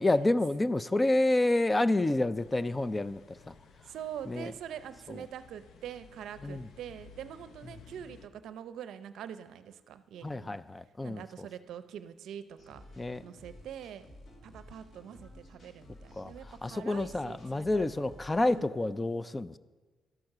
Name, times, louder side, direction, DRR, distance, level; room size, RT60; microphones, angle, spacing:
voice 1, 0.0-3.5 4.3-4.5 5.1-5.2 6.4-6.7 10.2-11.5 13.0-13.2 16.2-16.3 16.6-19.6, left 2 dB, 20° left, 17 dB, 0.3 m, -29 dB
sound 1, 2.3-8.3, left 5 dB, 65° left, 0.6 m, -56 dB
voice 2, 3.8-10.5 11.0-12.8 13.2-14.0 14.4-18.2 18.4-18.7, right 9 dB, 75° right, 13 dB, 0.5 m, -44 dB
sound 2, 12.6-18.7, left 1 dB, 40° left, 1.9 m, -53 dB
12.0 x 5.8 x 6.5 m, 1.4 s
cardioid pair, 90°, 0 cm